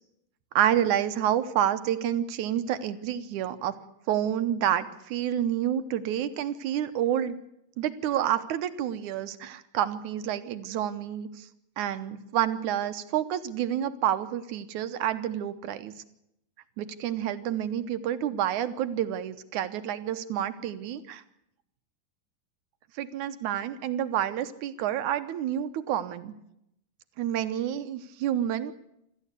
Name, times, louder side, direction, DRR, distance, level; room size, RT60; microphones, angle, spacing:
voice 1, 0.6-3.8 4.1-7.4 7.8-11.5 11.8-15.9 16.8-21.2 23.0-26.3 27.2-28.8, right 10 dB, 70° right, 11 dB, 2.0 m, -29 dB
26.0 x 14.0 x 8.2 m, 0.82 s
omnidirectional pair, 4.3 m